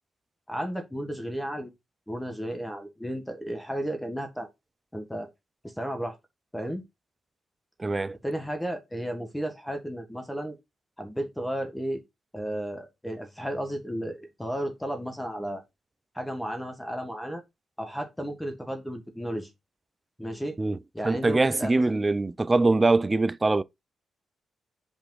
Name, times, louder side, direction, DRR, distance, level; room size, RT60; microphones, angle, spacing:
voice 1, 0.5-1.7 2.1-4.5 4.9-5.3 5.6-6.2 6.5-6.8 8.2-10.5 11.0-12.0 12.3-15.6 16.1-17.4 17.8-19.5 20.2-20.6 20.9-21.8, equal, 5° left, 1.5 m, -33 dB
voice 2, 7.8-8.2 20.6-20.8 21.0-23.6, right 2 dB, 25° right, 0.4 m, -23 dB
5.1 x 5.0 x 3.9 m
cardioid pair, 90°, 0 cm